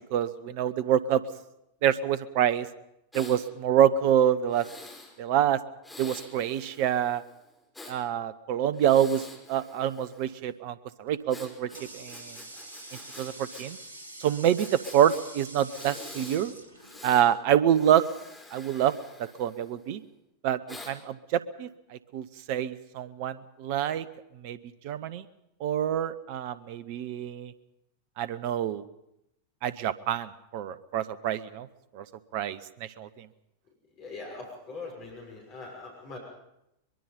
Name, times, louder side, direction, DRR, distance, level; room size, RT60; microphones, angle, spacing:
voice 1, 0.1-1.2 1.8-2.7 3.1-4.6 5.2-5.6 6.0-7.2 7.9-12.4 13.2-13.8 14.2-16.5 17.0-18.1 18.5-18.9 19.2-20.0 20.4-20.6 20.9-24.1 24.4-24.6 24.8-25.2 25.6-27.5 28.2-28.8 29.6-31.7 31.9-32.0 32.3-33.3, right 10 dB, 45° right, 15 dB, 1.0 m, -26 dB
Breathing, 3.1-3.4 4.5-5.1 5.8-8.0 8.7-10.4 11.3-13.7 13.9-14.0 14.6-15.2 15.7-16.4 16.8-17.3 17.7-19.9 20.7-20.9, left 2 dB, 5° left, 4.8 m, -47 dB
Water tap faucet, 11.1-17.6, right 1 dB, 70° right, 2.1 m, -46 dB
voice 2, 34.0-36.2, left 3 dB, 35° left, -1 dB, 6.4 m, -41 dB
23.0 x 22.5 x 5.4 m, 0.85 s
figure-of-eight pair, 90°, 0 cm